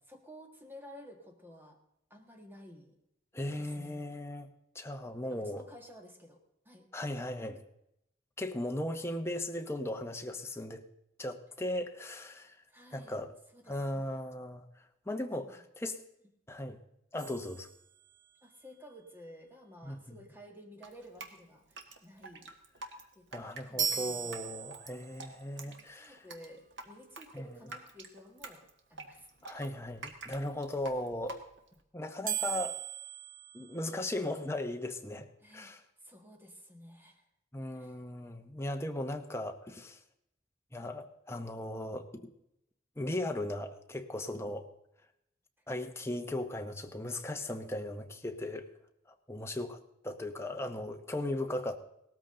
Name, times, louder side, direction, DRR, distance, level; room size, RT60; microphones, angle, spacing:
voice 1, 0.1-1.8 2.1-3.0 3.6-4.0 5.3-6.4 6.6-6.9 12.7-13.2 13.5-14.1 15.4-15.6 18.4-22.5 23.1-23.3 23.6-24.3 25.6-28.6 28.9-29.6 35.4-37.3 37.7-38.0, equal, 10° right, 3 dB, 1.6 m, -53 dB
voice 2, 3.3-4.5 4.7-5.7 6.9-7.6 8.4-10.8 11.2-12.6 12.9-13.3 13.7-16.0 16.5-16.8 17.1-17.7 19.8-20.2 23.3-26.2 27.3-27.6 29.4-31.4 31.9-32.8 33.5-35.3 35.5-35.8 37.5-40.0 40.7-42.3 43.0-44.7 45.7-48.7 49.1-51.8, left 1 dB, 15° left, 5 dB, 0.9 m, -37 dB
sound 1, 17.2-18.5 23.8-25.3 32.3-34.4, right 7 dB, 45° right, 1.2 m, -38 dB
Drip, 20.8-31.8, right 3 dB, 75° right, 1.5 m, -48 dB
17.5 x 13.5 x 3.8 m, 0.80 s
head